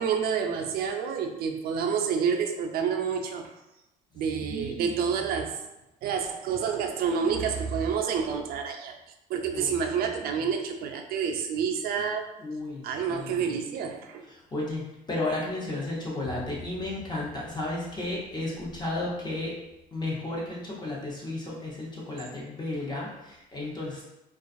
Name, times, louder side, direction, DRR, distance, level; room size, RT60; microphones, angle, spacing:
voice 1, 0.0-3.5 4.1-5.6 6.0-9.0 9.3-12.3 12.8-14.3, right 6 dB, 65° right, 4 dB, 0.4 m, -28 dB
voice 2, 4.4-5.1 9.5-9.7 10.3-10.5 12.4-13.6 14.3-19.5 19.9-24.0, left 2 dB, 25° left, -5 dB, 0.7 m, -33 dB
2.4 x 2.3 x 2.5 m, 0.94 s
cardioid pair, 110°, 17 cm